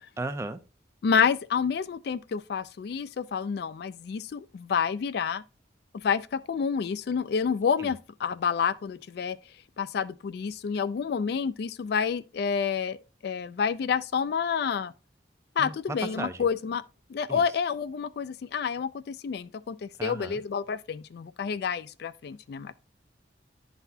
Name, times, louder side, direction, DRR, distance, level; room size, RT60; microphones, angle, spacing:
voice 1, 0.2-0.6 7.8-7.9 15.6-16.4 17.3-17.4 20.0-20.4, right 2 dB, 15° right, 0.4 m, -35 dB
voice 2, 1.0-5.4 5.9-9.4 9.8-13.0 13.2-14.9 15.6-16.8 17.1-22.7, left 6 dB, 60° left, 0.3 m, -29 dB
10.5 x 4.0 x 2.7 m
head